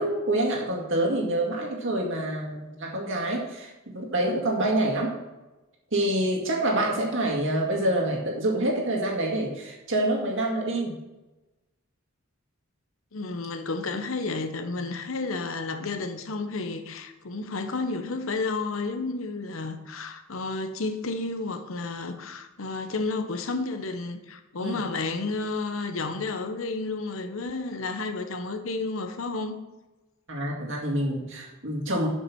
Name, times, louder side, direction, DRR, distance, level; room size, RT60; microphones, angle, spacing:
voice 1, 0.0-5.1 5.9-11.0 24.6-24.8 30.3-32.1, right 1 dB, 65° right, 2.1 m, -27 dB
voice 2, 13.1-29.6, left 3 dB, 75° left, 0.9 m, -31 dB
7.6 x 5.6 x 6.2 m
head